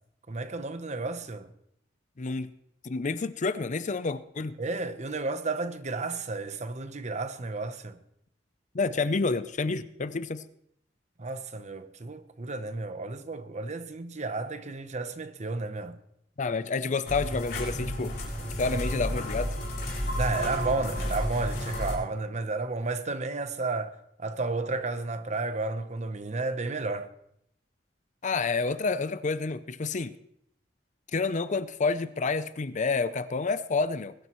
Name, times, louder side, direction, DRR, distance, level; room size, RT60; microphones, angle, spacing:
voice 1, 0.3-1.5 4.6-8.0 11.2-16.0 20.2-27.1, right 3 dB, 40° right, 0.9 m, -32 dB
voice 2, 2.2-2.5 2.8-4.5 8.7-10.4 16.4-18.2 18.6-19.5 28.2-30.2 31.1-34.1, left 4 dB, 45° left, 0.6 m, -29 dB
sound 1, 17.1-22.0, equal, 60° left, 7.1 m, -32 dB
21.5 x 12.5 x 3.1 m
head